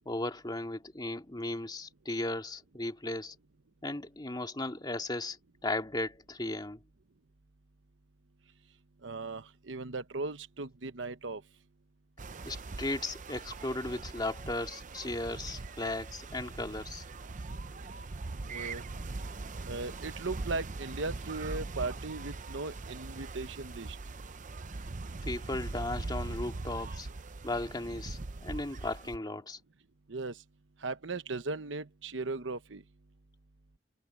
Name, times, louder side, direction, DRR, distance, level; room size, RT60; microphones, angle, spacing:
voice 1, 0.1-3.4 3.8-5.4 5.6-6.8 12.4-17.0 25.2-27.1 27.4-29.6, left 2 dB, 25° left, 2.2 m, -36 dB
voice 2, 9.0-11.4 18.5-18.8 19.7-24.0 30.1-30.4 30.8-32.8, right 3 dB, 80° right, 1.0 m, -37 dB
sound 1, 12.2-29.2, right 3 dB, 45° right, 0.7 m, -41 dB
head